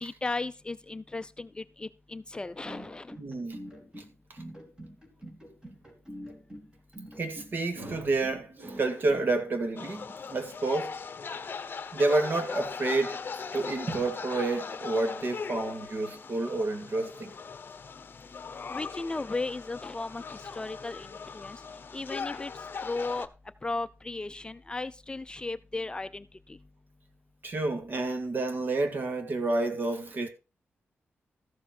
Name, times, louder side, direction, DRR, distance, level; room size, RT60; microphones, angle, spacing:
voice 1, 0.0-3.1 18.7-21.6 21.9-22.5 22.8-23.3 23.6-26.6, left 3 dB, 20° left, 0.5 m, -36 dB
sound 1, 2.4-9.2, equal, 15° right, 3.5 m, -45 dB
voice 2, 3.2-3.6 4.0-4.1 7.2-10.9 11.9-13.2 13.5-17.3 27.4-30.3, right 2 dB, 50° right, 2.0 m, -29 dB
sound 2, 9.8-23.3, left 5 dB, 50° left, 0.8 m, -39 dB
14.0 x 7.2 x 4.4 m
wide cardioid pair, 120°, 4 cm